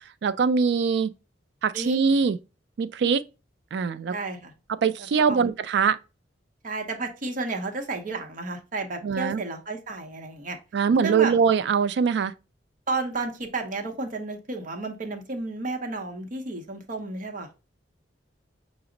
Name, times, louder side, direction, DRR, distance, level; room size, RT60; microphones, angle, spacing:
voice 1, 0.2-1.1 1.6-2.4 2.8-3.2 3.7-4.1 4.8-6.0 9.0-9.4 10.7-12.3, right 6 dB, 65° right, 0.3 m, -22 dB
voice 2, 4.1-4.5 5.2-5.5 6.6-10.6 11.0-11.4 12.9-17.5, right 3 dB, 45° right, 0.8 m, -32 dB
5.8 x 2.0 x 3.8 m
head